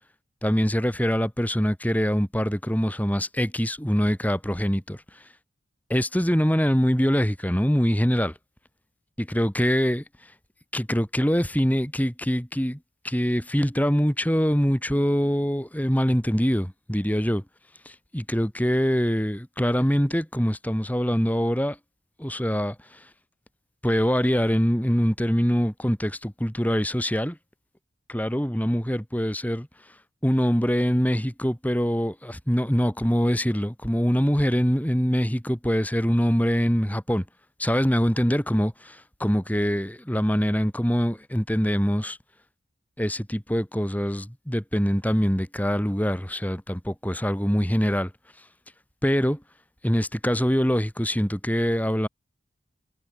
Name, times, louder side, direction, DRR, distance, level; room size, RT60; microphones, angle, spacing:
voice 1, 0.4-5.0 5.9-8.3 9.3-10.0 10.7-12.8 13.0-17.4 17.9-21.8 22.2-23.0 23.8-27.4 28.1-29.7 30.2-37.2 37.6-42.2 43.0-48.1 49.0-49.4 49.8-52.1, equal, 10° left, 2.6 m, -24 dB
head